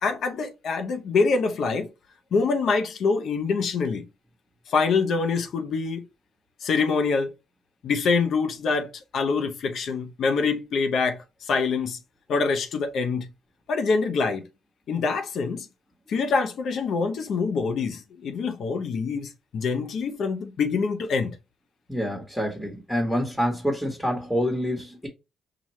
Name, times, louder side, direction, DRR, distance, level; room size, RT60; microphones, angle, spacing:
voice 1, 0.0-1.9 2.3-4.0 4.7-6.1 6.6-7.3 7.8-12.0 12.3-13.3 13.7-14.5 14.9-15.7 16.1-21.4, left 4 dB, 65° left, 0.6 m, -25 dB
voice 2, 21.9-25.1, equal, 5° left, 1.2 m, -27 dB
5.8 x 2.3 x 3.1 m
cardioid pair, 90°, 0 cm